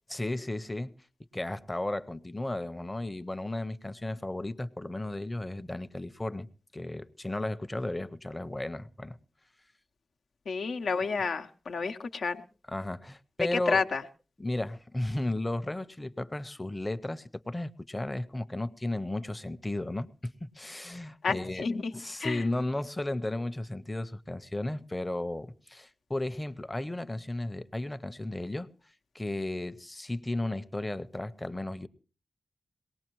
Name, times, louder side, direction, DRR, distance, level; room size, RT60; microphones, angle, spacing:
voice 1, 0.1-0.9 1.3-6.5 6.7-9.2 12.7-13.8 14.4-21.6 21.9-28.7 29.1-31.9, left 1 dB, 25° left, 0.8 m, -34 dB
voice 2, 10.5-12.4 13.5-14.0 21.2-21.9 22.2-22.4, left 4 dB, 80° left, 0.8 m, -30 dB
22.0 x 18.5 x 3.1 m
cardioid pair, 45°, 0 cm